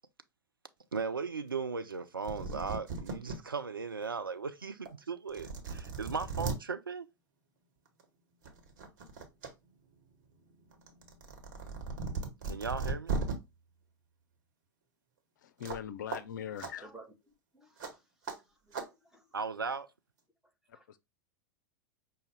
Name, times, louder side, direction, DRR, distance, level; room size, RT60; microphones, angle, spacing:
voice 1, 0.9-7.1 12.5-13.1 19.3-19.9, right 5 dB, 90° right, 0.4 m, -37 dB
sound 1, 2.0-3.4 3.9-4.0 4.9-5.0 5.3-6.6 7.9-8.0 8.4-9.5 9.8-13.3 15.6-15.8 16.1-16.2 16.6-16.7 17.8-17.9 18.3-18.4 18.7-18.9, right 4 dB, 55° right, 1.1 m, -37 dB
voice 2, 15.4-16.9 20.7-21.0, left 9 dB, 60° left, 0.5 m, -41 dB
voice 3, 17.5-19.3 20.7-21.0, right 2 dB, 5° right, 1.1 m, -56 dB
5.3 x 2.2 x 3.3 m
figure-of-eight pair, 90°, 11 cm